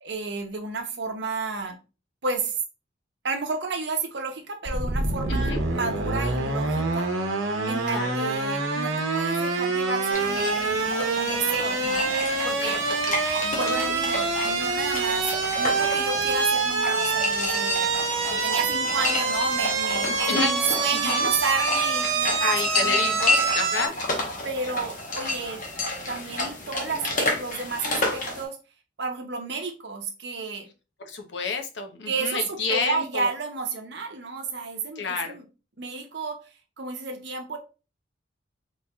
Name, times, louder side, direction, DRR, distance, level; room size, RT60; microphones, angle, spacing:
voice 1, 0.0-1.8 2.2-2.6 3.2-7.1 7.6-12.1 12.4-12.8 13.4-15.3 15.6-17.9 18.3-23.3 24.4-25.6 26.1-28.6 29.0-30.7 32.1-35.4 35.8-36.4 36.8-37.6, right 4 dB, 60° right, 4 dB, 0.7 m, -31 dB
sound 1, 4.6-23.9, right 3 dB, 85° right, 0.9 m, -26 dB
sound 2, 10.1-28.4, left 2 dB, 45° left, 0.9 m, -31 dB
voice 2, 20.1-20.5 21.0-21.3 22.3-24.1 31.1-33.3 35.0-35.3, left 4 dB, 65° left, 4 dB, 0.7 m, -30 dB
4.3 x 3.1 x 2.3 m, 0.32 s
head